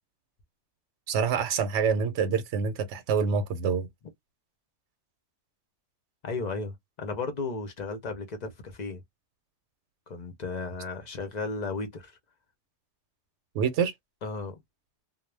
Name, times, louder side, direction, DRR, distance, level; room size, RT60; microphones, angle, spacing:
voice 1, 1.1-3.9 13.5-13.9, right 6 dB, 75° right, 0.9 m, -26 dB
voice 2, 6.2-9.0 10.1-12.2 14.2-14.6, left 3 dB, 45° left, 0.6 m, -34 dB
2.3 x 2.1 x 3.2 m
omnidirectional pair, 1.2 m